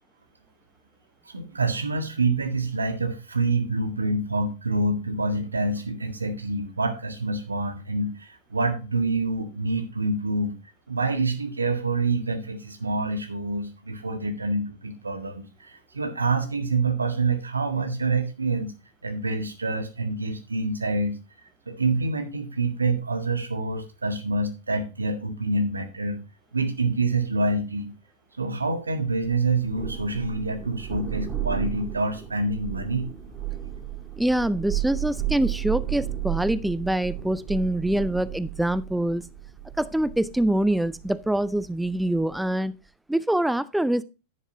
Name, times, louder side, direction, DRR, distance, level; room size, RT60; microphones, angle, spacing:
voice 1, 1.3-10.5 10.9-18.7 19.0-21.2 21.7-26.2 26.5-27.9 28.4-33.1, right 3 dB, 80° right, 8 dB, 1.8 m, -27 dB
Thunder, 29.2-42.4, right 11 dB, 20° right, 3.4 m, -34 dB
voice 2, 34.2-39.3 39.8-42.7 43.1-44.0, right 1 dB, 5° right, 17 dB, 0.5 m, -25 dB
10.5 x 10.0 x 2.8 m, 0.29 s
figure-of-eight pair, 90°, 0 cm